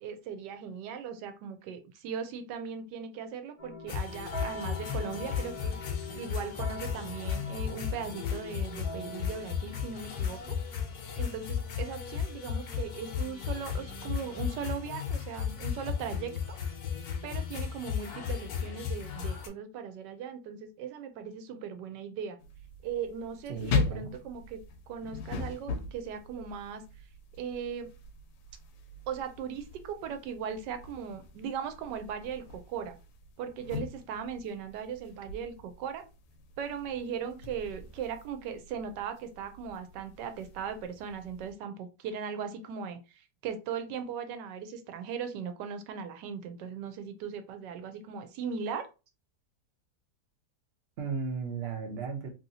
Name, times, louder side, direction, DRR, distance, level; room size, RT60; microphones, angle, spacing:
voice 1, 0.0-5.8 6.1-10.6 11.2-16.6 17.2-22.4 22.8-24.6 24.9-26.8 27.4-27.9 29.1-32.9 33.4-36.0 36.6-48.9, right 7 dB, 85° right, 8 dB, 1.2 m, -38 dB
sound 1, 3.6-11.1, left 1 dB, 45° left, 0.4 m, -44 dB
sound 2, 3.9-19.5, left 7 dB, 70° left, 1.1 m, -35 dB
sound 3, 22.4-41.5, left 4 dB, 90° left, 1.3 m, -40 dB
voice 2, 23.5-24.1 51.0-52.3, right 5 dB, 60° right, 4 dB, 0.6 m, -35 dB
3.0 x 2.7 x 2.7 m, 0.30 s
omnidirectional pair, 1.8 m